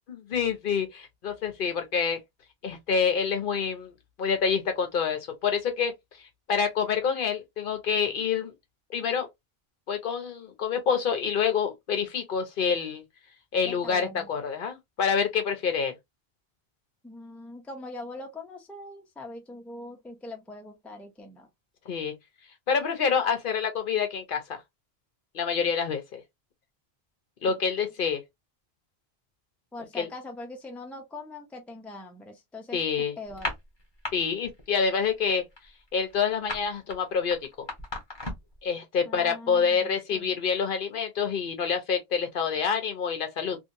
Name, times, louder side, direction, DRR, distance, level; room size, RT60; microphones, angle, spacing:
voice 1, 0.1-2.2 2.6-3.9 4.2-5.9 6.5-8.5 8.9-9.3 9.9-13.0 13.5-15.9 21.9-22.1 22.7-24.6 25.3-26.2 27.4-28.2 30.0-30.1 32.7-33.1 34.1-35.4 35.9-37.7 38.6-43.6, left 6 dB, 60° left, 0.8 m, -27 dB
voice 2, 13.6-14.3 17.0-21.5 29.7-33.5 39.0-40.3, left 2 dB, ahead, 0.5 m, -42 dB
sound 1, 33.3-34.1 34.4-34.7 35.0-38.6, left 2 dB, 25° left, 1.0 m, -35 dB
2.7 x 2.5 x 2.6 m
omnidirectional pair, 1.0 m